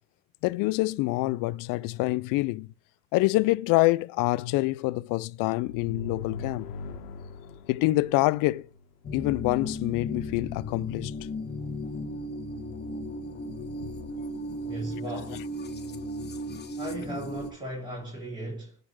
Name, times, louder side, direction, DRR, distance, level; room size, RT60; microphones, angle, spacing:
voice 1, 0.4-2.7 3.1-6.7 7.7-8.7 9.1-11.1 13.9-14.0, left 20 dB, 45° left, 0.5 m, -26 dB
sound 1, 5.6-9.2, left 4 dB, 75° left, 1.3 m, -41 dB
sound 2, 9.0-17.5, left 1 dB, 20° left, 1.2 m, -35 dB
voice 2, 14.6-15.5 16.8-18.8, equal, 10° right, 3.3 m, -37 dB
10.0 x 3.9 x 6.1 m
hypercardioid pair, 75°, 48 cm